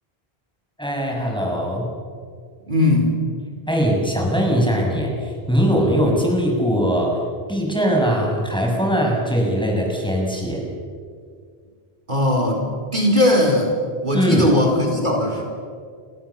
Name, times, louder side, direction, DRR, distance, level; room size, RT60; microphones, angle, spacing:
voice 1, 0.8-1.9 3.7-7.1 7.5-10.6 14.1-14.5, equal, 5° left, -1 dB, 6.6 m, -20 dB
voice 2, 2.7-3.1 12.1-12.6 12.9-13.7 14.0-15.4, left 1 dB, 50° right, 0 dB, 4.3 m, -18 dB
30.0 x 24.5 x 7.2 m, 2.1 s
omnidirectional pair, 1.0 m